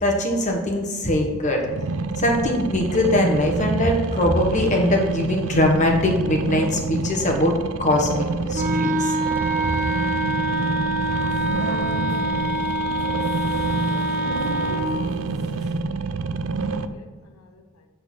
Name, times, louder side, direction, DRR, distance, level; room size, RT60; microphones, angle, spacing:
voice 1, 0.0-1.6 2.2-7.5 7.8-9.1, left 1 dB, 35° left, 1 dB, 1.3 m, -21 dB
sound 1, 1.7-16.9, right 4 dB, 65° right, 0.4 m, -28 dB
Wind instrument woodwind instrument, 8.5-14.9, right 1 dB, 40° right, 1.6 m, -25 dB
sound 2, 10.5-15.8, right 4 dB, ahead, 1.6 m, -39 dB
voice 2, 15.6-17.9, left 3 dB, 85° left, 5 dB, 0.6 m, -53 dB
8.5 x 3.9 x 5.7 m, 1.4 s
head